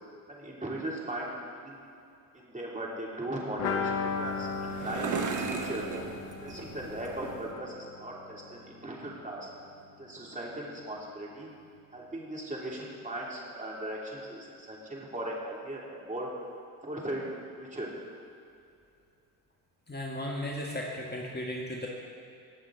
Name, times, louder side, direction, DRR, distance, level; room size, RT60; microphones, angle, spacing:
voice 1, 0.3-1.8 2.3-5.9 6.4-9.5 10.0-11.5 11.9-16.3 16.8-17.3 17.6-17.9, right 1 dB, 15° right, -3 dB, 3.0 m, -38 dB
sound 1, 3.6-9.2 9.4-9.5 9.8-9.9, left 5 dB, 90° left, 0.9 m, -36 dB
sound 2, 3.9-7.5, right 4 dB, 40° right, 1.3 m, -37 dB
voice 2, 19.9-21.9, left 1 dB, 20° left, -1 dB, 1.7 m, -35 dB
19.0 x 7.3 x 4.0 m, 2.6 s
hypercardioid pair, 55°, 47 cm